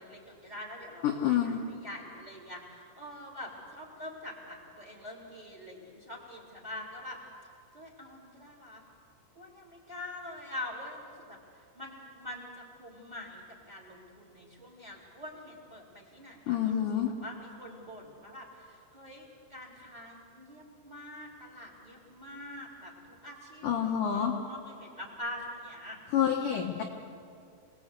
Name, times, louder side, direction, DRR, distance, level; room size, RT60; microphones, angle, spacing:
voice 1, 0.0-7.2 7.7-8.8 9.3-22.9 23.2-26.0, left 1 dB, 10° right, 0 dB, 3.6 m, -45 dB
voice 2, 1.0-1.6 16.5-17.1 23.6-24.3 26.1-26.8, left 9 dB, 65° left, 1 dB, 2.2 m, -28 dB
27.5 x 20.0 x 8.3 m, 2.4 s
omnidirectional pair, 5.5 m